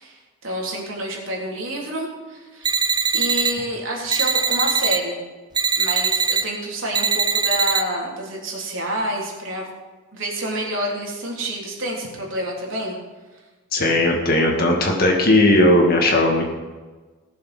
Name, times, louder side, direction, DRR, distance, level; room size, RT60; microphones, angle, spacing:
voice 1, 0.0-2.7 3.1-5.2 5.8-9.6 10.1-13.0, right 1 dB, 65° right, -2 dB, 3.4 m, -28 dB
sound 1, 2.7-3.5 4.1-5.0 5.6-6.4 6.9-7.8, right 5 dB, 20° right, 0.7 m, -21 dB
voice 2, 13.7-16.4, left 1 dB, 45° left, 1 dB, 2.1 m, -17 dB
17.5 x 7.2 x 6.1 m, 1.3 s
head